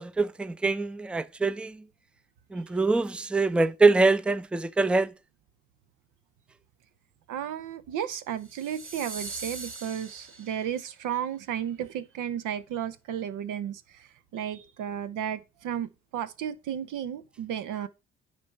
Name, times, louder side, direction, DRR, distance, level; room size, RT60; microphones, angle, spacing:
voice 1, 0.0-1.8 2.5-5.1, right 3 dB, 5° right, 0.5 m, -24 dB
voice 2, 7.3-17.9, right 9 dB, 65° right, 0.8 m, -33 dB
sound 1, 8.4-10.9, right 3 dB, 40° right, 1.6 m, -41 dB
9.6 x 3.4 x 5.5 m
hypercardioid pair, 45°, 33 cm